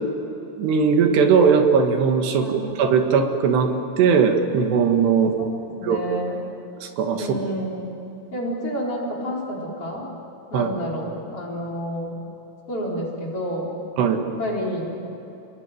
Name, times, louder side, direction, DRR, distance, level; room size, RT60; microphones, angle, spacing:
voice 1, 0.6-3.7 4.0-5.3 5.8-6.0 6.8-7.3 10.5-10.7 14.0-14.2, right 6 dB, 80° right, 4 dB, 3.9 m, -19 dB
voice 2, 5.4-6.4 7.2-7.8 8.3-10.1 10.5-12.2 12.7-13.8 14.4-15.0, equal, 35° left, -3 dB, 5.2 m, -29 dB
29.5 x 21.0 x 9.3 m, 2.9 s
omnidirectional pair, 4.8 m